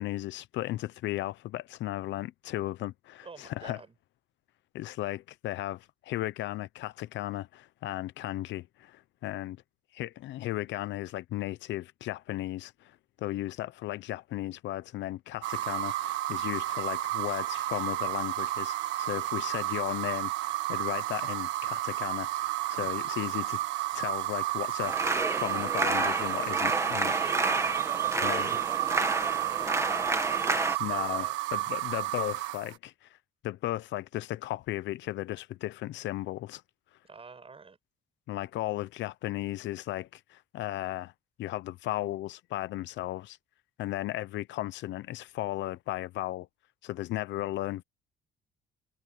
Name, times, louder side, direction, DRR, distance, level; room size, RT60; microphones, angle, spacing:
voice 1, 0.0-3.8 4.7-9.6 9.9-23.6 23.9-27.1 28.2-28.5 30.8-33.1 33.4-36.6 38.3-41.1 41.4-43.4 43.8-46.5 46.8-47.8, left 15 dB, 75° left, 0.9 m, -35 dB
voice 2, 3.2-3.9 22.7-22.9 27.2-27.5 27.7-29.3 29.8-30.1 30.5-31.4 37.0-37.8, right 4 dB, 30° right, 7.6 m, -48 dB
sound 1, 15.4-32.8, right 15 dB, 85° right, 1.7 m, -32 dB
sound 2, 24.8-30.8, right 2 dB, 15° right, 2.2 m, -30 dB
cardioid pair, 90°, 19 cm